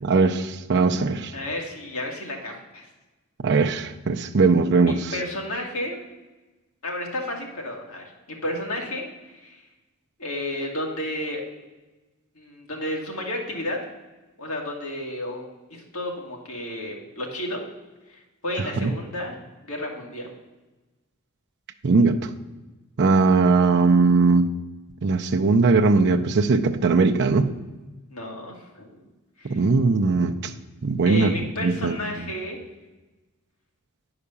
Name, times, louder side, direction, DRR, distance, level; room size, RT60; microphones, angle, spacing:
voice 1, 0.0-1.3 3.4-5.1 18.8-18.9 21.8-22.3 23.0-24.5 25.0-27.5 29.5-30.5 30.8-31.3 31.6-32.0, right 4 dB, 50° right, 0.5 m, -19 dB
voice 2, 1.3-2.9 4.8-6.0 6.8-9.7 10.2-11.4 12.4-13.8 14.4-17.6 18.1-20.3 28.1-29.0 29.4-29.6 31.1-32.6, left 1 dB, 70° left, 2.0 m, -32 dB
9.6 x 4.9 x 6.9 m
head